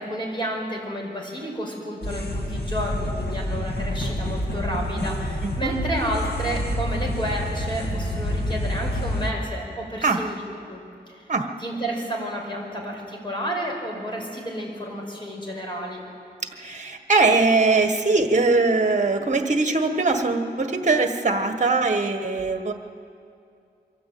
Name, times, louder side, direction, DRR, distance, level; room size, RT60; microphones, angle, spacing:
voice 1, 0.0-10.8 11.1-11.2 11.6-16.0, equal, 25° left, -1 dB, 5.2 m, -31 dB
sound 1, 2.0-9.3, equal, 65° left, 1.8 m, -28 dB
voice 2, 5.4-5.7 10.0-10.2 11.3-11.5 16.6-22.7, right 3 dB, 45° right, 6 dB, 1.5 m, -21 dB
23.5 x 14.0 x 8.6 m, 2.5 s
wide cardioid pair, 90°, 18 cm